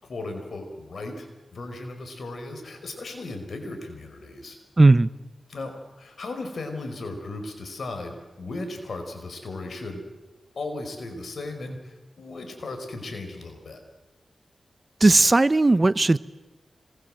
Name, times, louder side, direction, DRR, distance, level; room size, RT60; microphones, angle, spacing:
voice 1, 0.0-4.6 5.5-10.0 10.6-13.8, left 2 dB, 70° left, 5 dB, 5.2 m, -36 dB
voice 2, 4.8-5.1 15.0-16.2, right 2 dB, 35° right, 17 dB, 0.8 m, -16 dB
26.0 x 20.5 x 7.8 m, 1.1 s
cardioid pair, 50°, 0 cm